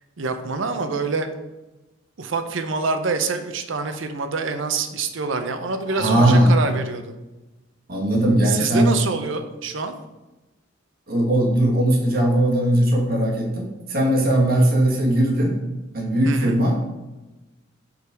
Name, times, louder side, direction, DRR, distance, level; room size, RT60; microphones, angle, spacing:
voice 1, 0.2-1.3 2.2-7.2 8.4-9.9 16.2-16.6, right 4 dB, 65° right, 8 dB, 0.6 m, -26 dB
voice 2, 5.9-6.5 7.9-8.9 11.1-15.6 15.9-16.8, right 1 dB, 45° right, -1 dB, 1.3 m, -19 dB
5.6 x 3.9 x 4.6 m, 1.1 s
head